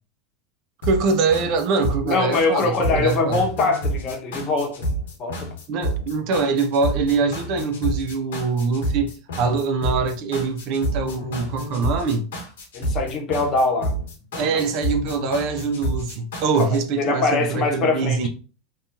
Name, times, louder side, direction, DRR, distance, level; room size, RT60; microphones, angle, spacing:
sound 1, 0.8-16.8, right 1 dB, 75° left, 1.0 m, -29 dB
voice 1, 0.9-3.4 5.7-12.3 14.4-18.3, right 4 dB, 55° right, 0.4 m, -23 dB
voice 2, 2.0-4.9 5.2-5.5 12.7-13.9 14.3-14.6 16.6-16.7 17.0-18.3, left 3 dB, 40° left, 0.9 m, -23 dB
2.7 x 2.3 x 2.5 m
hypercardioid pair, 90°, 0 cm